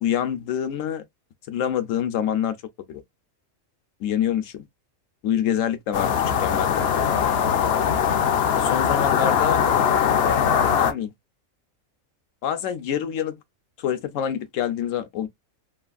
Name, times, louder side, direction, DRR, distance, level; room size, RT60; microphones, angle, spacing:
voice 1, 0.0-1.0 1.5-2.6 2.9-3.0 4.0-4.6 5.2-6.9 8.6-9.6 10.7-11.1 12.4-13.4 13.8-15.3, left 9 dB, 80° left, 1.0 m, -26 dB
sound 1, 5.9-10.9, left 7 dB, 65° left, 0.7 m, -21 dB
3.2 x 2.3 x 2.4 m
omnidirectional pair, 1.4 m